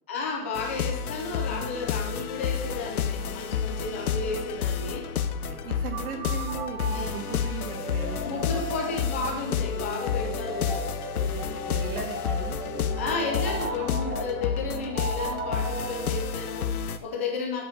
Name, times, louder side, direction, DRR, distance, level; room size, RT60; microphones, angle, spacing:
voice 1, 0.1-5.2 6.9-7.1 8.2-10.9 12.6-17.7, left 3 dB, 10° left, 2 dB, 0.4 m, -33 dB
sound 1, 0.5-17.0, left 7 dB, 85° left, 1.0 m, -30 dB
voice 2, 5.5-8.7 11.3-12.6, right 6 dB, 80° right, 4 dB, 2.3 m, -38 dB
sound 2, 5.9-16.7, right 1 dB, 20° right, 1.7 m, -36 dB
8.3 x 5.1 x 7.3 m, 0.82 s
hypercardioid pair, 160°, 43 cm